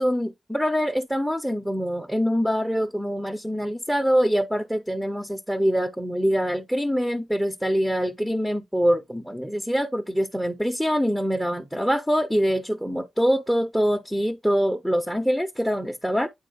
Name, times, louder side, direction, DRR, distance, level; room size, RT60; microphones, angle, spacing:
voice 1, 0.0-16.3, equal, ahead, 0.4 m, -24 dB
9.1 x 3.7 x 2.7 m
wide cardioid pair, 160°, 0 cm